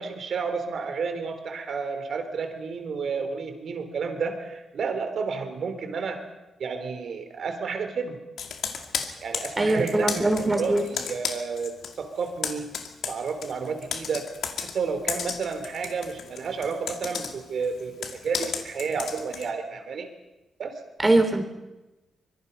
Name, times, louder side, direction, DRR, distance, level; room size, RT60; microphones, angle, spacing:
voice 1, 0.0-6.3 6.6-8.2 9.2-10.2 10.5-12.7 13.1-20.1 20.6-20.7, right 5 dB, 65° right, 7 dB, 3.5 m, -31 dB
Computer keyboard, 8.4-12.0 12.2-19.5, left 7 dB, 85° left, 2.3 m, -34 dB
voice 2, 9.6-10.8 21.0-21.4, right 2 dB, 20° right, 6 dB, 3.4 m, -22 dB
25.0 x 22.5 x 5.7 m, 1.1 s
cardioid pair, 95°, 0 cm